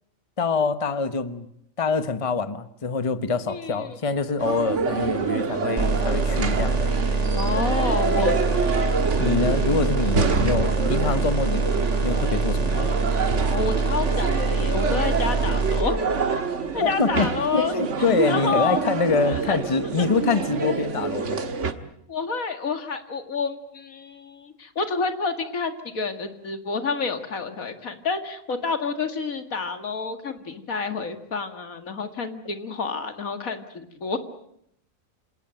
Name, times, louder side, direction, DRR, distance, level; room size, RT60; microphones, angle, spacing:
voice 1, 0.4-1.5 1.8-6.8 8.2-8.3 9.2-11.7 12.0-12.9 16.8-21.4, left 4 dB, 25° left, 12 dB, 1.1 m, -25 dB
voice 2, 3.5-4.0 7.3-8.3 8.7-8.9 9.2-9.4 13.5-16.0 16.7-17.8 18.2-18.8 19.2-20.1 22.1-34.2, left 4 dB, 90° left, 8 dB, 2.5 m, -29 dB
sound 1, 4.4-21.7, right 5 dB, 60° right, 1.8 m, -27 dB
sound 2, 5.8-15.8, right 3 dB, 30° right, 1.7 m, -24 dB
26.5 x 18.0 x 8.9 m, 0.74 s
omnidirectional pair, 1.4 m